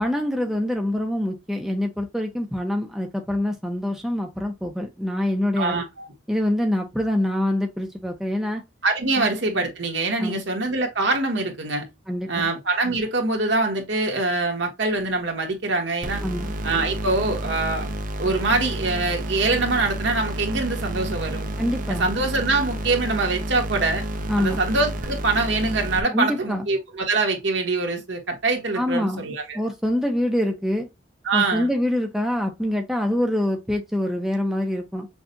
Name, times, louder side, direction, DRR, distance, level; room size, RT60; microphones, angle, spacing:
voice 1, 0.0-5.8 6.3-8.6 9.2-9.3 10.2-10.4 12.1-12.5 16.2-16.5 21.6-22.1 24.3-24.6 26.1-26.7 28.7-29.2 29.5-30.9 31.3-35.1, left 1 dB, ahead, 0.7 m, -25 dB
voice 2, 5.6-6.1 8.8-11.9 12.3-16.2 16.6-17.9 18.2-21.5 21.9-24.0 24.4-29.6 31.2-31.7, right 3 dB, 65° right, 1.5 m, -24 dB
sound 1, 16.0-26.0, right 1 dB, 45° right, 0.7 m, -30 dB
6.1 x 2.4 x 2.5 m
head